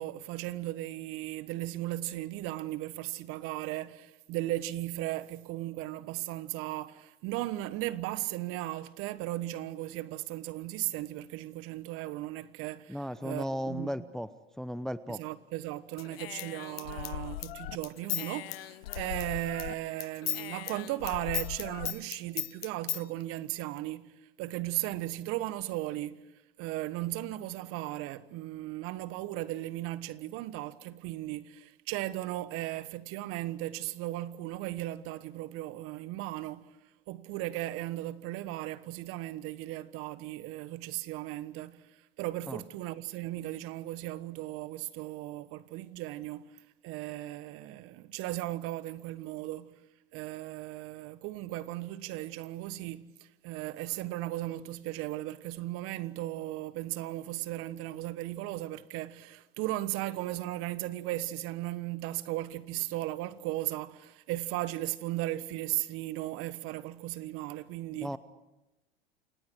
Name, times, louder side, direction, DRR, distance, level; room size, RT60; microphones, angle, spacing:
voice 1, 0.0-13.9 15.1-24.1 24.4-26.2 26.6-36.7 37.1-41.8 42.2-46.5 46.8-49.7 50.1-68.2, right 16 dB, 45° right, 1.4 m, -36 dB
voice 2, 12.9-14.3 14.6-15.2 42.5-42.6 68.0-68.2, equal, ahead, 0.7 m, -35 dB
Human voice / Scissors, 16.0-19.7 20.0-23.0, left 15 dB, 70° left, 0.8 m, -37 dB
29.5 x 27.0 x 4.7 m
hypercardioid pair, 100°, 31 cm